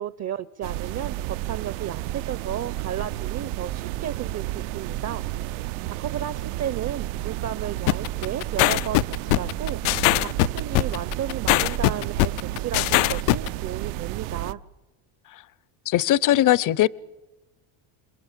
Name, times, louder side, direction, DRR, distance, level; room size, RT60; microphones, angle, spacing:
voice 1, 0.0-5.2 5.8-12.3 12.6-14.6, right 10 dB, 35° right, 0.7 m, -33 dB
sound 1, 0.6-14.5, right 15 dB, 80° right, 1.0 m, -31 dB
sound 2, 7.9-13.5, left 20 dB, 80° left, 0.8 m, -20 dB
voice 2, 15.9-16.9, left 13 dB, 40° left, 0.7 m, -20 dB
28.5 x 21.0 x 7.5 m
cardioid pair, 110°, 49 cm